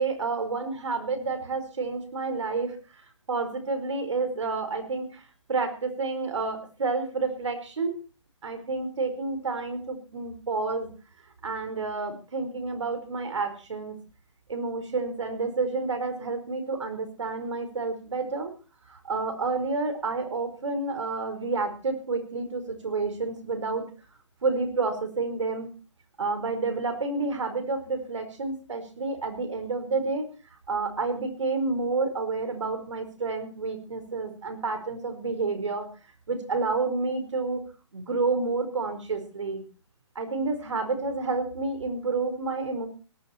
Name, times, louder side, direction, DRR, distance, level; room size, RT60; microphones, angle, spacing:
voice 1, 0.0-2.8 3.3-5.2 5.5-8.0 8.4-10.9 11.4-14.0 14.5-18.5 18.9-23.8 24.4-25.7 26.2-30.3 30.7-35.9 36.3-37.6 37.9-39.6 40.1-42.9, right 3 dB, 75° right, 8 dB, 4.7 m, -29 dB
18.0 x 14.0 x 4.4 m, 0.36 s
hypercardioid pair, 160°, 15 cm